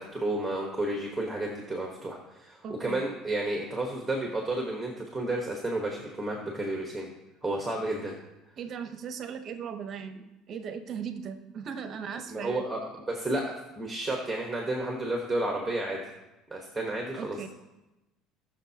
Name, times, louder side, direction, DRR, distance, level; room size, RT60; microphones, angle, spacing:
voice 1, 0.0-7.1 7.4-8.1 12.3-12.8 13.1-16.0 16.5-17.5, right 1 dB, 5° right, 0 dB, 1.2 m, -31 dB
voice 2, 2.6-3.0 8.6-12.6 17.2-17.5, right 7 dB, 40° right, 9 dB, 0.8 m, -38 dB
19.0 x 6.4 x 2.8 m, 1.0 s
cardioid pair, 150°, 0 cm